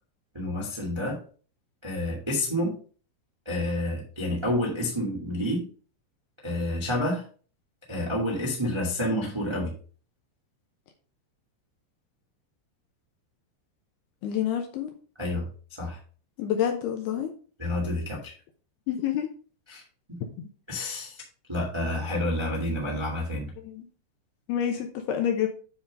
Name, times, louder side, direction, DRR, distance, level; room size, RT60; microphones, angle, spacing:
voice 1, 0.3-1.2 1.8-2.7 3.4-5.7 6.4-7.2 7.9-9.7 15.2-16.0 17.6-18.3 19.7-19.8 20.1-20.2 20.7-21.2 21.5-23.5, left 1 dB, 35° right, -3 dB, 0.4 m, -29 dB
voice 2, 14.2-14.9 16.4-17.3 18.9-19.3 20.4-20.5 23.6-23.9 24.5-25.5, left 9 dB, 75° left, 4 dB, 2.5 m, -28 dB
9.8 x 3.8 x 5.2 m, 0.40 s
omnidirectional pair, 5.5 m